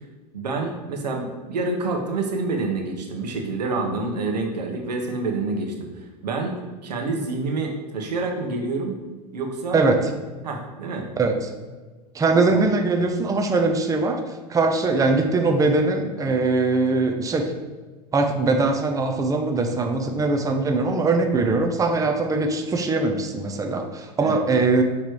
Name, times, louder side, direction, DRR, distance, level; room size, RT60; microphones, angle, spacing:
voice 1, 0.3-5.7 6.2-6.6 6.8-9.0 9.3-9.8 10.4-11.1 12.5-12.6 24.2-24.4, right 3 dB, 85° right, 2 dB, 1.1 m, -27 dB
voice 2, 9.7-10.1 11.2-11.5 12.1-17.5 18.1-24.8, right 3 dB, 15° right, 3 dB, 0.7 m, -21 dB
6.5 x 3.3 x 4.7 m, 1.3 s
hypercardioid pair, 90°, 21 cm